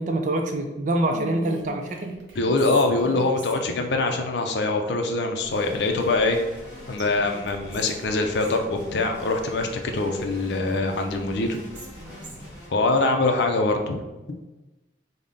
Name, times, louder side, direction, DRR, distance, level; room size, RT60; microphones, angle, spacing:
voice 1, 0.0-2.2, right 1 dB, 40° right, 3 dB, 0.4 m, -25 dB
Whispering, 1.1-3.9 5.9-6.7 7.0-7.1 7.5-8.6 10.4-12.6, right 1 dB, 75° right, 0.8 m, -41 dB
voice 2, 2.4-6.4 6.9-11.6 12.7-14.0, left 2 dB, 65° left, 4 dB, 0.4 m, -23 dB
sound 1, 5.4-12.7, equal, 20° left, 1.3 m, -43 dB
3.5 x 2.1 x 3.8 m, 1.1 s
head